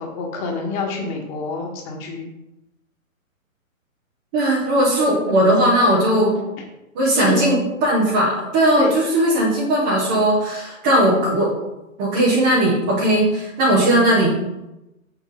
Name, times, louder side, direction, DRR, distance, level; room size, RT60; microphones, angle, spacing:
voice 1, 0.0-2.3 7.1-7.6 8.8-8.9, left 4 dB, 25° left, 1 dB, 1.5 m, -27 dB
voice 2, 4.3-6.4 6.9-11.5 12.0-14.4, right 1 dB, 5° right, -7 dB, 0.4 m, -18 dB
7.1 x 6.5 x 3.8 m, 0.95 s
hypercardioid pair, 135°, 42 cm